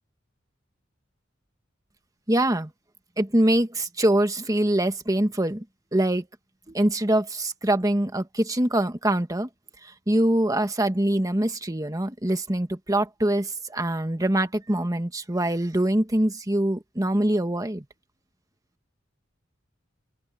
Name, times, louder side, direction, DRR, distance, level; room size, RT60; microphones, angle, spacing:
voice 1, 2.3-2.7 3.2-5.6 5.9-6.2 6.7-9.5 10.1-17.8, right 1 dB, 20° right, 1.5 m, -24 dB
open air
head